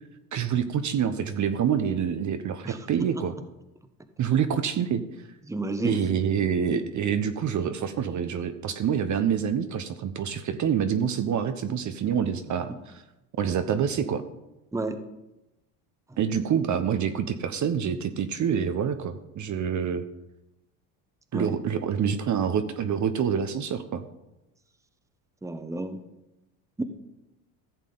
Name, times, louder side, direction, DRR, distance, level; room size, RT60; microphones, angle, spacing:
voice 1, 0.3-3.3 4.2-5.3 5.8-13.0 13.4-14.2 16.2-20.1 21.3-24.0, right 8 dB, 40° right, 9 dB, 0.9 m, -27 dB
voice 2, 5.5-6.0 14.7-15.0 21.3-21.6 25.4-26.0 26.8-26.9, right 2 dB, 5° right, 9 dB, 1.1 m, -30 dB
15.0 x 7.3 x 4.0 m, 0.94 s
supercardioid pair, 85°, 45 cm